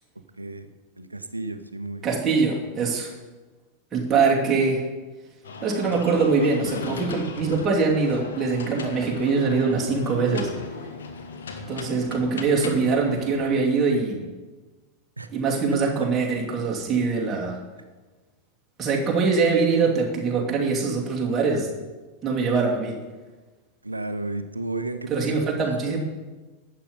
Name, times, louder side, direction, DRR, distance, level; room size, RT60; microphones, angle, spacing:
voice 1, 0.4-0.7 1.0-2.1 15.2-15.3 23.8-25.7, right 2 dB, 80° right, 10 dB, 0.8 m, -32 dB
voice 2, 2.0-3.1 3.9-4.8 5.6-10.5 11.7-14.3 15.3-17.6 18.8-21.7 22.2-23.0 25.1-26.0, right 4 dB, 20° right, -2 dB, 2.7 m, -23 dB
sound 1, 5.4-13.5, left 4 dB, 65° left, 1.4 m, -37 dB
11.5 x 8.7 x 5.4 m, 1.2 s
figure-of-eight pair, 90°, 0 cm